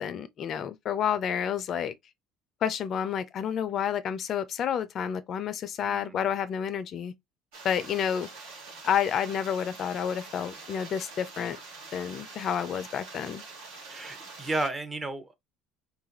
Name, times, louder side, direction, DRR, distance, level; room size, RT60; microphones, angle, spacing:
voice 1, 0.0-1.9 2.6-7.1 7.6-8.3 8.8-11.6 11.9-13.4, left 8 dB, 50° left, 0.3 m, -30 dB
voice 2, 5.8-6.2 13.9-15.3, right 2 dB, 20° right, 0.7 m, -33 dB
sound 1, 7.5-14.7, right 3 dB, 75° right, 1.0 m, -45 dB
2.6 x 2.3 x 2.8 m
hypercardioid pair, 65°, 0 cm